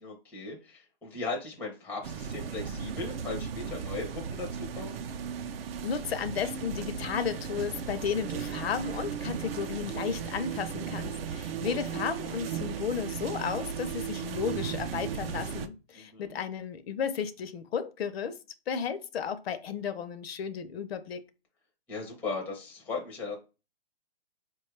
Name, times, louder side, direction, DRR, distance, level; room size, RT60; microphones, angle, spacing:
voice 1, 0.0-5.0 11.6-11.8 15.9-16.4 21.9-23.4, left 3 dB, 5° left, 0.5 m, -37 dB
sound 1, 2.0-15.7, right 7 dB, 65° right, 0.5 m, -36 dB
voice 2, 5.8-18.4 18.7-21.2, left 7 dB, 75° left, 0.6 m, -33 dB
4.2 x 2.3 x 3.1 m
hypercardioid pair, 145°, 31 cm